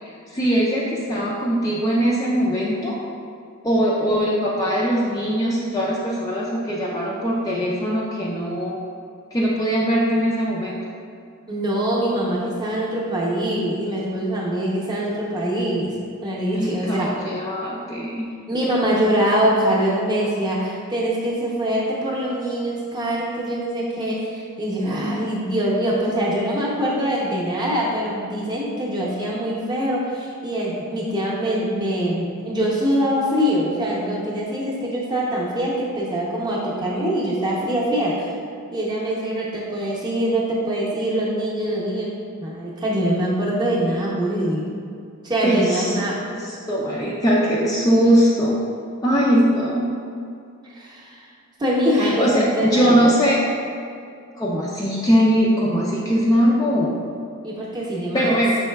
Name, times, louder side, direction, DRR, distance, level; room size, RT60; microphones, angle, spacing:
voice 1, 0.0-3.0 3.6-8.8 9.3-10.8 16.5-18.3 45.4-46.0 46.4-48.6 49.0-49.8 52.0-53.5 54.4-57.0 58.1-58.6, equal, 15° left, -5 dB, 0.3 m, -21 dB
voice 2, 11.5-15.9 16.2-17.2 18.5-38.3 38.7-42.1 42.4-44.7 45.2-46.2 50.8-51.2 51.6-53.0 57.4-58.3, equal, 20° right, -5 dB, 0.7 m, -23 dB
5.4 x 3.9 x 2.2 m, 2.4 s
head